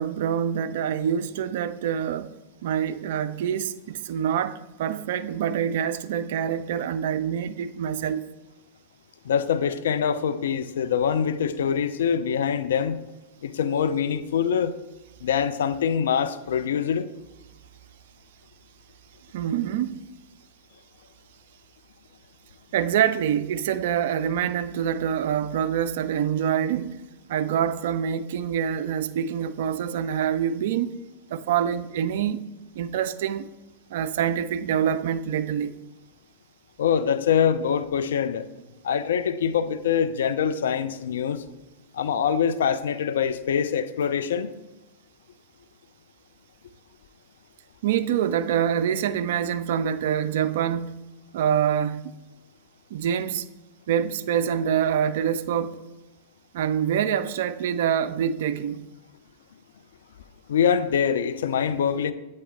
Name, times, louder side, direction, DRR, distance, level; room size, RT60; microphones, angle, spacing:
voice 1, 0.0-2.4 2.6-8.3 19.3-20.0 22.7-31.0 31.3-33.5 33.9-35.8 47.8-51.0 51.3-52.2 52.9-53.5 53.9-55.8 56.5-58.9, right 9 dB, 55° right, 0.3 m, -26 dB
voice 2, 9.2-13.0 13.4-14.7 15.2-17.1 36.8-38.5 38.8-41.4 41.9-44.5 60.5-62.1, left 7 dB, 60° left, 0.3 m, -24 dB
8.3 x 3.2 x 4.1 m
figure-of-eight pair, 90°, 0 cm